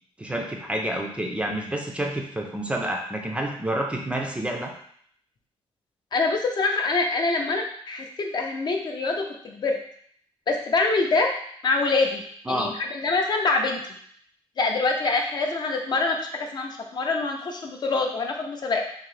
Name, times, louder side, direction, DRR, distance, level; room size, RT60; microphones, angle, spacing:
voice 1, 0.2-4.7 12.5-12.7, right 1 dB, 10° right, 1 dB, 0.4 m, -29 dB
voice 2, 6.1-9.8 10.5-11.3 11.6-13.8 14.6-18.8, left 3 dB, 45° left, 2 dB, 0.5 m, -25 dB
3.7 x 2.6 x 3.2 m, 0.64 s
wide cardioid pair, 160°, 10 cm